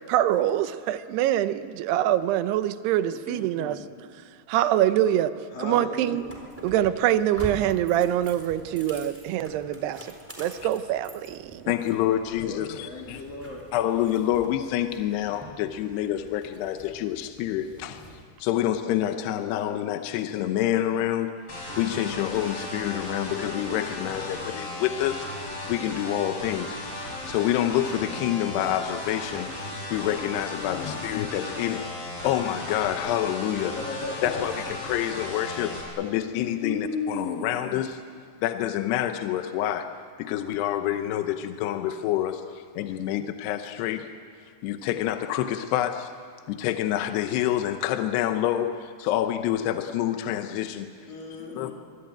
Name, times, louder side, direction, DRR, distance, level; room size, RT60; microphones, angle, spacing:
voice 1, 0.1-3.8 4.5-5.3 5.6-6.2 6.6-11.6, right 12 dB, 80° right, 12 dB, 2.9 m, -24 dB
voice 2, 3.0-3.8 5.5-6.2 12.4-13.6 30.6-31.0 33.7-34.5 36.6-37.6 51.1-51.7, left 3 dB, 60° left, -1 dB, 5.1 m, -35 dB
sound 1, 6.2-18.2, equal, 5° right, 3.4 m, -45 dB
voice 3, 11.7-13.2 13.7-18.1 18.4-21.4 21.8-25.3 25.7-29.5 29.9-31.9 32.2-33.8 34.2-38.0 38.4-39.9 40.2-44.1 44.6-46.1 46.5-50.9 51.6-51.7, left 12 dB, 85° left, 7 dB, 2.9 m, -27 dB
sound 2, 21.5-35.8, left 2 dB, 35° left, 6.5 m, -36 dB
24.5 x 23.0 x 9.0 m, 2.2 s
omnidirectional pair, 4.7 m